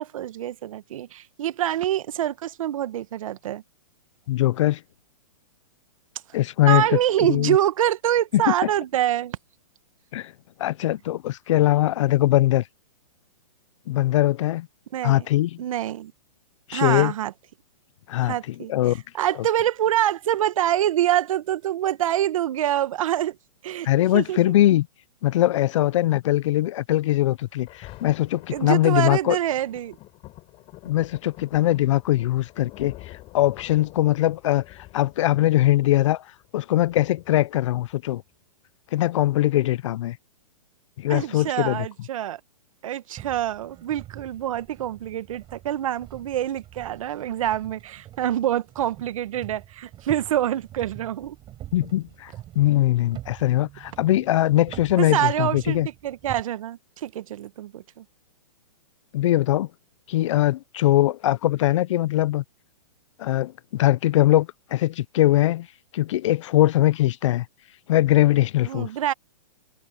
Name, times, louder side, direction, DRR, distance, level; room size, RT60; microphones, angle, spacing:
voice 1, 0.0-3.6 6.6-9.4 14.9-15.3 15.6-16.1 16.7-17.3 18.2-18.7 19.1-23.4 23.6-23.9 24.1-24.4 28.5-30.0 41.1-42.4 42.8-51.4 55.0-58.0 68.6-69.1, right 12 dB, 60° right, 1.5 m, -25 dB
voice 2, 4.3-4.8 6.3-7.0 7.3-7.6 8.3-8.5 10.1-10.3 10.6-12.6 13.9-14.7 15.0-15.6 16.7-17.1 18.1-19.0 23.8-24.9 25.2-29.4 30.8-36.2 36.5-38.2 38.9-40.2 41.0-41.9 51.7-55.9 59.1-59.7 60.1-62.4 63.2-65.7 65.9-67.4 67.9-68.9, left 14 dB, 55° left, 0.7 m, -21 dB
Thunder, 27.3-38.3 39.0-39.1, left 18 dB, 30° left, 6.3 m, -47 dB
sound 1, 43.2-56.4, right 13 dB, 25° right, 6.9 m, -44 dB
hypercardioid pair, 140°, 19 cm